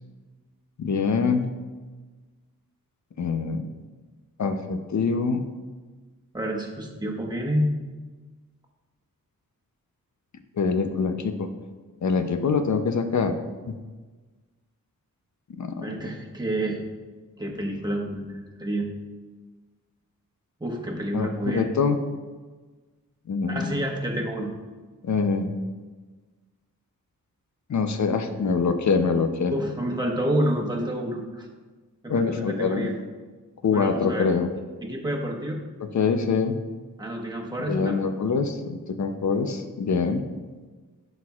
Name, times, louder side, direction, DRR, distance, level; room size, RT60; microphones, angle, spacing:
voice 1, 0.8-1.5 3.2-3.7 4.4-5.5 10.6-11.5 12.0-13.4 15.6-15.9 21.1-22.0 23.3-23.7 25.0-25.5 27.7-29.5 32.1-32.9 33.6-34.5 35.9-36.6 37.7-40.2, left 5 dB, 55° left, 8 dB, 0.7 m, -24 dB
voice 2, 6.3-7.7 15.8-16.8 17.4-18.9 20.6-21.7 23.5-24.5 29.5-31.5 32.0-32.9 33.7-34.3 34.8-35.6 37.0-38.0, right 1 dB, 10° right, -1 dB, 1.3 m, -28 dB
11.0 x 4.4 x 2.4 m, 1.3 s
cardioid pair, 65°, 35 cm